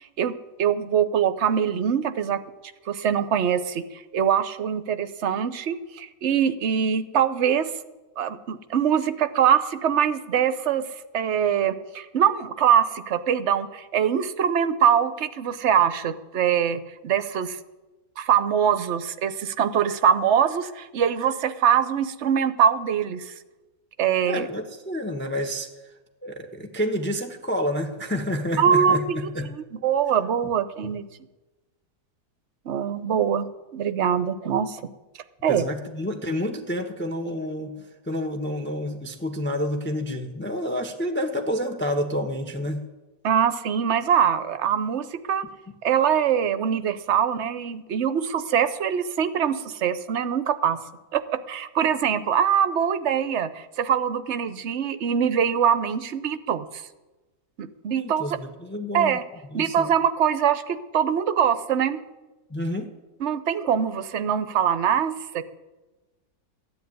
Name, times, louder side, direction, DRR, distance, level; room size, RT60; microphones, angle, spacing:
voice 1, 0.6-2.4 2.9-7.7 8.2-17.6 18.2-23.3 24.0-24.5 28.6-29.2 29.6-31.0 32.7-34.8 35.4-35.6 43.2-45.4 45.8-50.8 51.1-56.8 57.6-58.4 58.9-59.2 59.5-62.0 63.2-65.4, right 8 dB, 55° right, 12 dB, 1.0 m, -23 dB
voice 2, 24.3-25.9 26.2-29.5 35.5-42.8 58.0-59.2 59.5-59.9 62.5-62.9, equal, 10° left, 5 dB, 1.0 m, -29 dB
14.0 x 10.5 x 9.4 m, 1.1 s
omnidirectional pair, 1.7 m